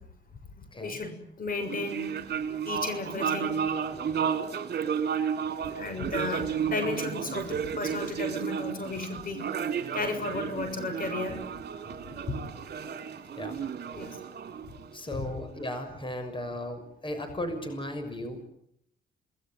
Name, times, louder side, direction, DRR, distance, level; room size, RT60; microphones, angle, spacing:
voice 1, 0.8-2.1 2.6-3.5 5.7-9.4 9.7-11.4 12.1-12.4 13.9-14.2 15.1-15.3, left 3 dB, 45° left, 9 dB, 6.7 m, -34 dB
sound 1, 1.6-15.3, right 7 dB, 55° right, 3.7 m, -33 dB
voice 2, 14.9-18.4, left 1 dB, 25° left, 8 dB, 6.3 m, -36 dB
29.0 x 20.0 x 9.2 m, 0.71 s
cardioid pair, 90°, 20 cm